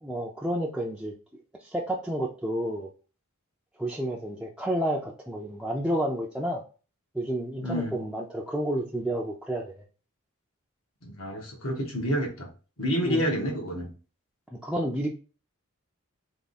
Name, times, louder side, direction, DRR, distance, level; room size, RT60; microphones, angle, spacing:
voice 1, 0.0-2.9 3.8-6.6 7.1-9.8 13.0-13.3 14.5-15.1, right 1 dB, 5° right, -3 dB, 0.5 m, -30 dB
voice 2, 7.6-8.0 11.0-12.5 12.8-13.9, equal, 75° left, 0 dB, 1.5 m, -29 dB
3.5 x 3.2 x 4.0 m, 0.36 s
head